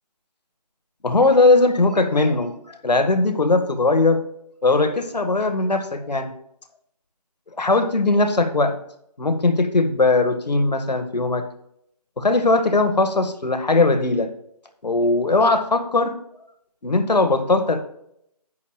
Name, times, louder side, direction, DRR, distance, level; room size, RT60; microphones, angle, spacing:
voice 1, 1.0-4.2 4.6-6.3 7.6-8.8 9.2-11.4 12.2-14.3 14.8-16.2 16.8-17.8, left 3 dB, 90° left, 8 dB, 1.7 m, -19 dB
10.5 x 9.0 x 2.4 m, 0.74 s
figure-of-eight pair, 175°, 21 cm